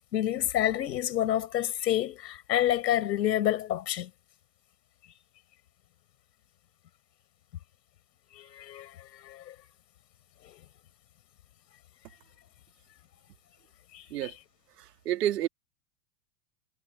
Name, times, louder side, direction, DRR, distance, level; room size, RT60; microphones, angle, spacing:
voice 1, 0.1-4.1 8.3-9.5 10.4-10.6 13.9-14.3, left 12 dB, 90° left, 6.1 m, -29 dB
voice 2, 15.1-15.5, right 12 dB, 70° right, 2.5 m, -28 dB
supercardioid pair, 180°, 49 cm